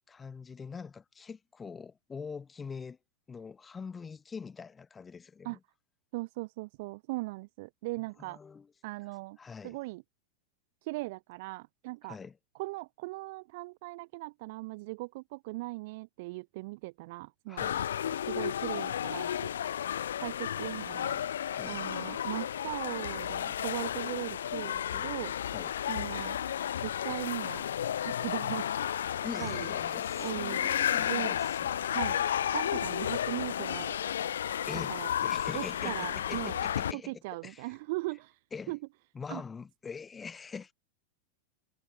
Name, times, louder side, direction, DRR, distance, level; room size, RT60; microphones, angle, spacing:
voice 1, 0.1-3.0 3.3-5.6 8.2-8.7 9.4-9.8 12.0-12.4 17.5-17.8 21.5-21.8 25.5-25.8 29.1-32.2 34.7-35.0 35.2-37.7 38.5-38.8 39.1-40.7, left 5 dB, 15° left, 1.2 m, -44 dB
voice 2, 6.1-8.4 8.8-9.4 9.6-10.0 10.8-12.2 12.5-17.7 18.2-19.5 20.2-21.2 21.6-25.3 25.9-26.4 26.8-27.6 28.0-28.7 29.4-29.7 30.2-30.7 31.0-31.4 31.9-32.2 32.5-34.0 34.9-35.1 35.5-36.6 36.9-38.4 38.7-38.8 39.3-39.4, right 23 dB, 50° right, 0.6 m, -39 dB
sound 1, 17.6-36.9, left 10 dB, 65° left, 0.3 m, -32 dB
figure-of-eight pair, 90°, 0 cm